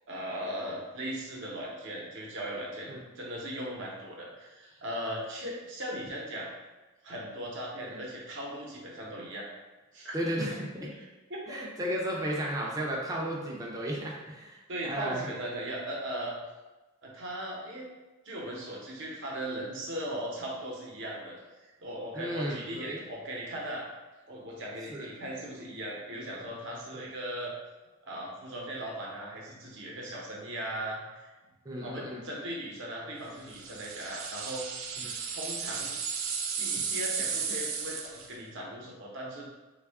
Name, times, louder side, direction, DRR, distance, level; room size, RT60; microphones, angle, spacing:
voice 1, 0.1-6.5 7.0-9.5 9.9-10.3 11.0-11.6 14.7-16.4 17.0-17.9 18.2-23.8 24.3-27.5 28.0-31.3 31.8-34.9 35.2-36.2 36.6-38.0 38.3-39.4, right 1 dB, 60° right, -3 dB, 0.8 m, -38 dB
voice 2, 10.1-10.9 11.5-15.3 22.1-23.0 24.9-25.1 26.9-27.0 31.7-32.2 35.0-35.1, equal, 15° right, -3 dB, 0.4 m, -34 dB
sound 1, 33.5-38.3, right 6 dB, 75° right, 0.4 m, -34 dB
3.4 x 2.3 x 3.4 m, 1.1 s
head